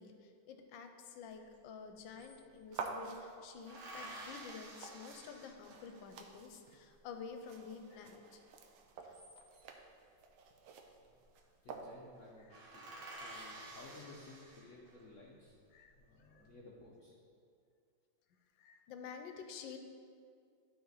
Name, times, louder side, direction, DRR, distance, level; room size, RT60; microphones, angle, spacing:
voice 1, 0.0-8.4 9.0-9.1 15.7-15.9 16.3-16.4 18.6-19.8, left 6 dB, 80° left, 6 dB, 1.4 m, -50 dB
sound 1, 1.5-1.6 1.8-2.9 3.7-6.2 8.8-9.8 11.0-11.4 11.7-11.8 12.1-12.2 12.5-15.1 15.6-16.3, right 1 dB, 65° right, 1.8 m, -51 dB
sound 2, 2.7-12.3, right 5 dB, 85° right, 1.4 m, -50 dB
voice 2, 11.6-15.5 16.0-17.1, left 2 dB, 55° left, -3 dB, 0.9 m, -56 dB
12.0 x 4.2 x 4.0 m, 2.3 s
omnidirectional pair, 2.1 m